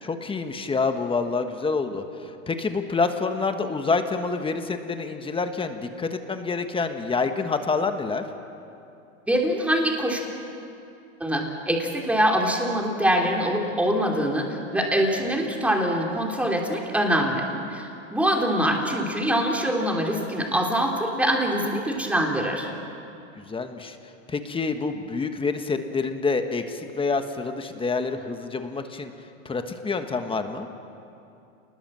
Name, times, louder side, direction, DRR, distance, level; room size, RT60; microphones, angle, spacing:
voice 1, 0.0-8.3 15.4-15.5 23.4-24.0 24.3-29.1 29.4-30.7, left 4 dB, 15° left, 7 dB, 1.4 m, -27 dB
voice 2, 9.3-10.2 11.2-22.7, equal, 5° right, 0 dB, 3.2 m, -24 dB
27.5 x 20.5 x 7.6 m, 2.6 s
supercardioid pair, 130°, 40 cm